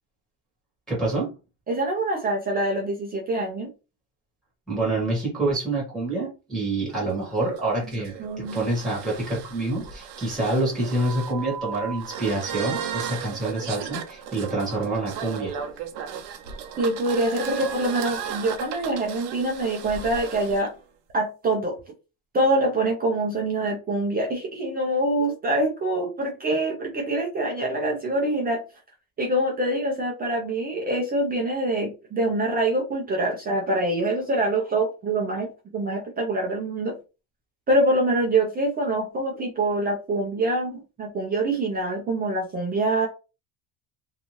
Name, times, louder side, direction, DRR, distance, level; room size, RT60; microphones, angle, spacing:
voice 1, 0.9-1.3 4.7-15.5, right 2 dB, ahead, -4 dB, 1.1 m, -27 dB
voice 2, 1.7-3.7 8.2-8.6 16.8-20.7 21.1-21.8 22.3-28.6 29.2-36.9 37.7-43.1, right 1 dB, 20° right, 0 dB, 0.4 m, -25 dB
sound 1, 6.9-20.6, right 7 dB, 65° right, 0.6 m, -35 dB
2.6 x 2.4 x 2.9 m, 0.31 s
cardioid pair, 165°, 45 cm